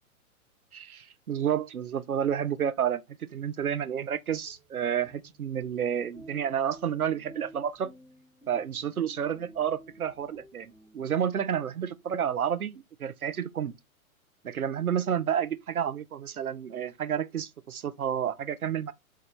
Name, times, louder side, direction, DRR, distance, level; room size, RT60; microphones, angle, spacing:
voice 1, 0.7-3.0 3.3-7.9 8.5-13.7 14.4-18.9, right 9 dB, 85° right, 0.6 m, -30 dB
sound 1, 3.9-11.4, right 1 dB, ahead, 1.0 m, -53 dB
3.1 x 2.3 x 3.4 m
figure-of-eight pair, 110°, 43 cm